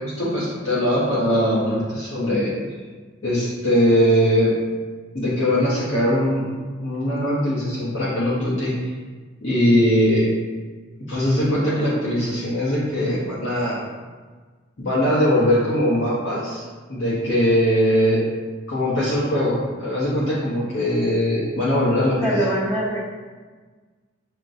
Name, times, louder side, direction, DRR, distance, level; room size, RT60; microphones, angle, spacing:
voice 1, 0.0-2.6 3.2-4.5 5.1-6.5 6.8-8.7 9.4-10.3 11.1-13.8 14.8-18.2 18.7-22.4, equal, 65° left, -9 dB, 0.8 m, -21 dB
voice 2, 22.2-23.0, right 1 dB, 15° left, -8 dB, 1.0 m, -23 dB
6.0 x 2.1 x 2.6 m, 1.4 s
head